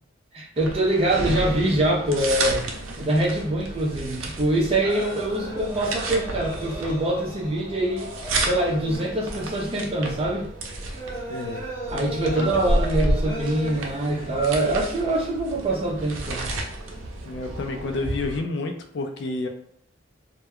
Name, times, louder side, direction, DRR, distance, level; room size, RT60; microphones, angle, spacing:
voice 1, 0.3-2.7 3.0-8.1 8.4-10.5 11.9-16.5, right 1 dB, 30° right, -2 dB, 0.5 m, -24 dB
sound 1, 0.6-18.4, right 1 dB, 85° right, 0.5 m, -31 dB
sound 2, 4.8-15.4, equal, 20° left, 0.8 m, -37 dB
voice 2, 11.3-11.6 12.3-12.5 17.2-19.5, left 3 dB, 55° left, 4 dB, 0.3 m, -29 dB
2.2 x 2.2 x 3.5 m, 0.68 s
head